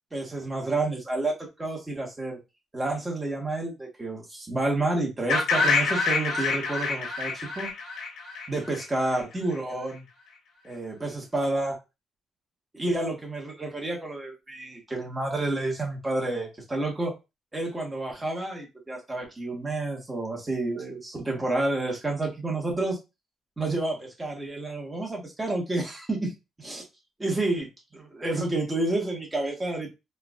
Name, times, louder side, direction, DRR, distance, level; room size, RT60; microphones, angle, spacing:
voice 1, 0.1-2.4 2.7-7.7 8.5-10.0 10.6-11.8 12.7-17.1 17.5-23.0 23.6-26.3 26.6-26.8 27.2-29.9, right 2 dB, 15° right, 0 dB, 1.2 m, -30 dB
sound 1, 5.3-9.2, left 4 dB, 85° left, 1.5 m, -27 dB
4.5 x 2.4 x 2.4 m, 0.25 s
cardioid pair, 130°, 0 cm